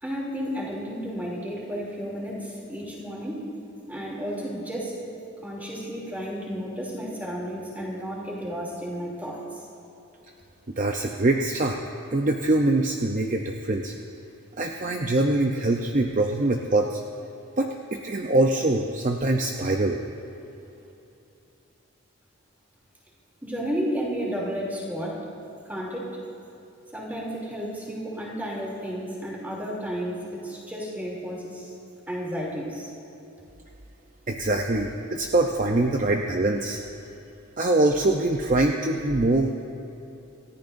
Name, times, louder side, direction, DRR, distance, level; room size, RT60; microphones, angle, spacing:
voice 1, 0.0-3.5 3.9-5.0 5.4-9.4 23.4-25.3 25.7-26.2 26.9-31.7 32.1-32.9, equal, 10° right, -4 dB, 2.9 m, -32 dB
voice 2, 10.7-11.8 12.1-13.9 14.6-17.0 17.6-20.0 34.3-36.8 37.6-39.5, right 2 dB, 40° right, 2 dB, 0.6 m, -23 dB
27.5 x 14.5 x 2.6 m, 2.9 s
head